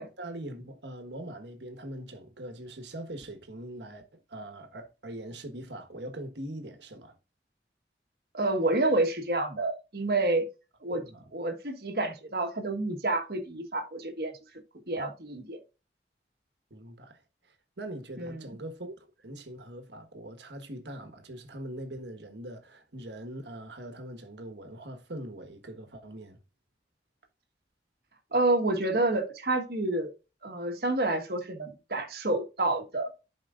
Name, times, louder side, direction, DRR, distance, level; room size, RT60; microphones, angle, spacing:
voice 1, 0.0-4.0 4.3-7.2 10.9-11.3 16.7-17.2 17.5-26.4, right 1 dB, 85° right, 1.4 m, -42 dB
voice 2, 8.3-10.5 10.8-11.0 11.3-14.3 14.9-15.6 18.2-18.4 28.3-30.1 30.4-33.1, right 2 dB, 60° right, 1.5 m, -28 dB
11.5 x 5.0 x 2.5 m
head